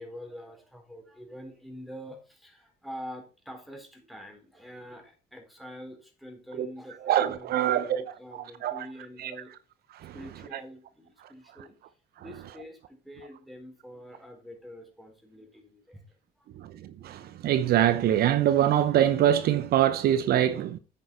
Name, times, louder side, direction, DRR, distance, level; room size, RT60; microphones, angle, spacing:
voice 1, 0.0-9.5 10.1-11.8 12.2-16.1 16.4-16.5, equal, ahead, 4.6 m, -45 dB
voice 2, 7.1-7.8 8.6-8.8 9.2-9.3 10.0-10.1 16.6-16.7 17.0-20.8, right 11 dB, 65° right, 0.8 m, -23 dB
9.8 x 8.8 x 4.4 m
cardioid pair, 110°, 17 cm